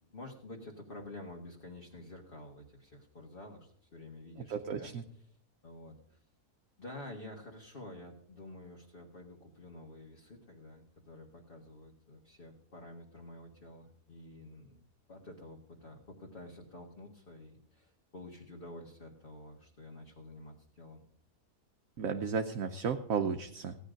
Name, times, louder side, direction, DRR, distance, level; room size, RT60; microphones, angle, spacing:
voice 1, 0.0-4.9 5.3-5.4 5.6-6.2 6.8-21.0, left 1 dB, 35° left, -1 dB, 1.8 m, -50 dB
voice 2, 4.5-5.0 22.0-23.8, right 6 dB, 65° right, 5 dB, 1.2 m, -33 dB
16.5 x 10.5 x 5.1 m, 0.64 s
omnidirectional pair, 1.6 m